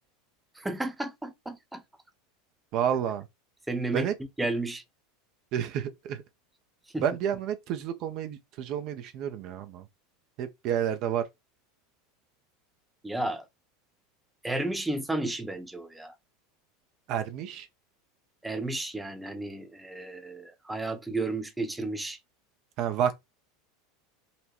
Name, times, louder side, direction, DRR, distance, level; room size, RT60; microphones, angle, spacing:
voice 1, 0.6-1.8 3.7-4.1 4.4-4.8 6.9-7.0 13.0-13.5 14.4-16.1 18.4-22.2, right 2 dB, 10° right, 0.7 m, -32 dB
voice 2, 2.7-3.3 3.9-4.1 5.5-6.2 7.0-9.8 10.4-11.2 17.1-17.7 22.8-23.2, right 9 dB, 50° right, 0.4 m, -30 dB
4.0 x 2.2 x 2.8 m
hypercardioid pair, 85°, 0 cm